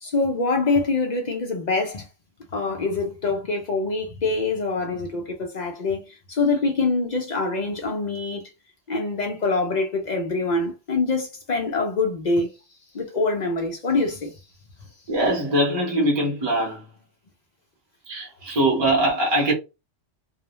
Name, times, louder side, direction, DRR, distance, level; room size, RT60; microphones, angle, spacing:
voice 1, 0.0-2.1 2.5-8.4 8.9-12.5 12.9-14.3, left 3 dB, 55° left, 0.5 m, -25 dB
voice 2, 15.1-16.9 18.1-19.5, right 1 dB, 25° right, 0.8 m, -22 dB
2.4 x 2.0 x 3.0 m
omnidirectional pair, 1.3 m